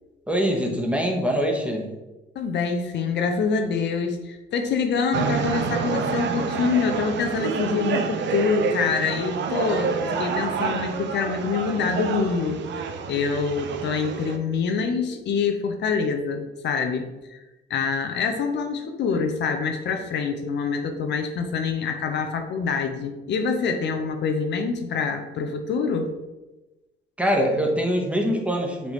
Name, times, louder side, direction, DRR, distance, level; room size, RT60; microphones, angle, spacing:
voice 1, 0.3-1.9 27.2-28.9, equal, 5° right, 1 dB, 0.8 m, -23 dB
voice 2, 2.4-17.4 17.7-26.1, left 5 dB, 65° left, 6 dB, 0.5 m, -25 dB
sound 1, 5.1-14.4, right 5 dB, 65° right, 0.5 m, -28 dB
4.0 x 3.3 x 3.0 m, 1.1 s
cardioid pair, 90°, 20 cm